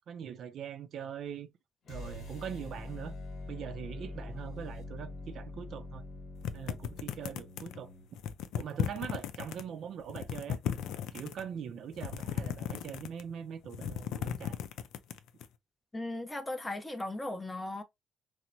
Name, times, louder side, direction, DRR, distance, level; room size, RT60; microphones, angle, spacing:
voice 1, 0.1-1.5 1.9-3.1 3.5-6.0 6.5-7.9 8.5-10.6 11.1-14.6, right 8 dB, 65° right, 0.4 m, -42 dB
sound 1, 1.8-8.1, left 2 dB, 60° left, 1.3 m, -44 dB
sound 2, 6.4-7.8 8.2-9.6 10.0-11.4 11.9-13.3 13.6-15.5, left 9 dB, 90° left, 0.3 m, -36 dB
voice 2, 15.9-17.8, left 2 dB, 15° left, 0.5 m, -37 dB
4.3 x 2.0 x 2.5 m
cardioid pair, 115°, 0 cm